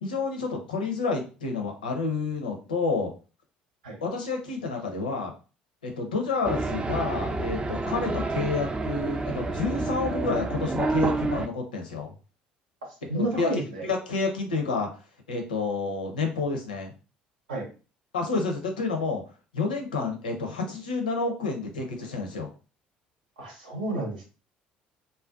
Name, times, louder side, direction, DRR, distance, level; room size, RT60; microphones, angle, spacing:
voice 1, 0.0-3.1 4.0-5.3 5.8-12.1 13.1-13.5 13.8-14.9 15.3-16.9 18.1-19.2 19.5-22.5, left 4 dB, 85° left, 3 dB, 0.5 m, -29 dB
sound 1, 6.4-11.5, right 3 dB, 20° right, 0.3 m, -29 dB
voice 2, 13.1-13.9 17.5-17.7 23.4-24.2, right 1 dB, 80° right, 0 dB, 0.8 m, -30 dB
2.5 x 2.1 x 2.3 m, 0.34 s
figure-of-eight pair, 55°, 4 cm